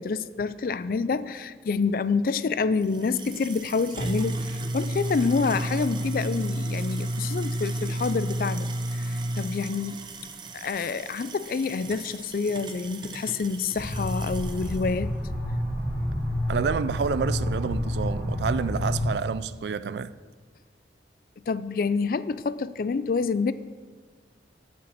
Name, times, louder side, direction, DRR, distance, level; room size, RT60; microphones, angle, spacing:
voice 1, 0.0-10.0 10.5-15.1 21.5-23.5, left 4 dB, 50° left, 0.4 m, -27 dB
sound 1, 2.8-14.9, right 1 dB, 25° right, 0.6 m, -32 dB
sound 2, 13.7-19.1, left 1 dB, 5° left, 2.0 m, -29 dB
voice 2, 16.5-20.1, right 5 dB, 70° right, 0.3 m, -28 dB
7.7 x 7.1 x 7.3 m
head